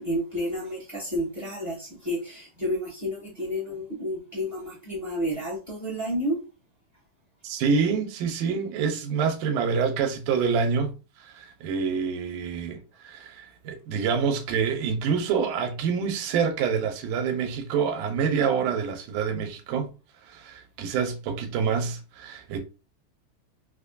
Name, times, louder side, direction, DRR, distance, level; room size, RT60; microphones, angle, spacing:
voice 1, 0.0-6.4, equal, 20° right, 0.4 m, -30 dB
voice 2, 7.4-10.9 11.2-19.9 20.3-22.6, right 6 dB, 85° right, 2.2 m, -27 dB
5.0 x 2.2 x 2.5 m
omnidirectional pair, 3.6 m